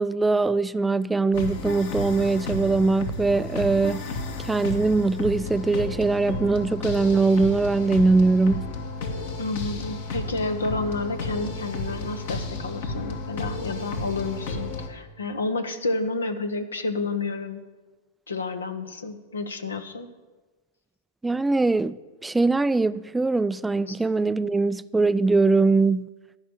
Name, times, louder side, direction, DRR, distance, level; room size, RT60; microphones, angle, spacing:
voice 1, 0.0-4.1 4.4-8.7 21.2-26.1, right 3 dB, 10° right, 0.3 m, -22 dB
sound 1, 1.3-14.9, left 3 dB, 65° left, 1.8 m, -32 dB
voice 2, 9.4-17.6 18.3-20.1 23.9-24.0, left 3 dB, 85° left, 1.1 m, -30 dB
14.5 x 5.8 x 8.8 m
hypercardioid pair, 100°, 0 cm